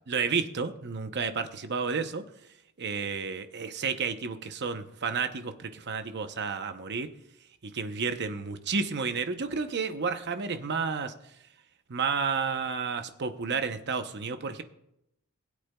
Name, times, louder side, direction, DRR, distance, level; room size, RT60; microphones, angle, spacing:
voice 1, 0.1-2.2 2.8-7.1 7.6-11.1 11.9-14.6, right 5 dB, 50° right, 8 dB, 0.7 m, -31 dB
20.0 x 8.3 x 2.3 m, 0.81 s
head